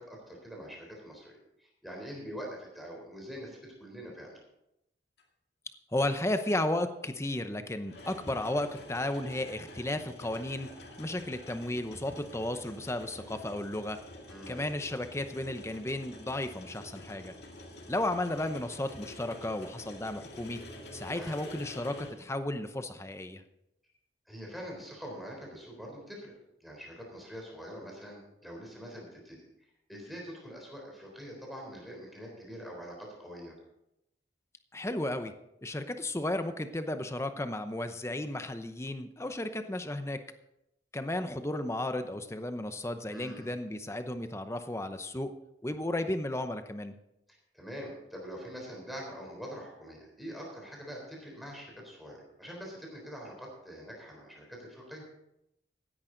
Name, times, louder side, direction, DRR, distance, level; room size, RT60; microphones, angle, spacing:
voice 1, 0.0-4.4 14.3-14.6 21.2-21.4 24.3-26.3 26.6-29.4 29.9-33.6 43.1-43.5 47.3-55.0, equal, ahead, -1 dB, 3.7 m, -44 dB
sound 1, 5.2-5.3 7.8-22.1, left 1 dB, 60° left, 2.4 m, -48 dB
voice 2, 5.9-10.7 11.0-14.0 14.5-17.3 17.9-20.6 20.9-23.4 34.7-35.3 35.6-40.2 40.9-45.3 45.6-46.9, left 1 dB, 15° left, 9 dB, 0.8 m, -34 dB
15.5 x 10.5 x 3.9 m, 0.84 s
head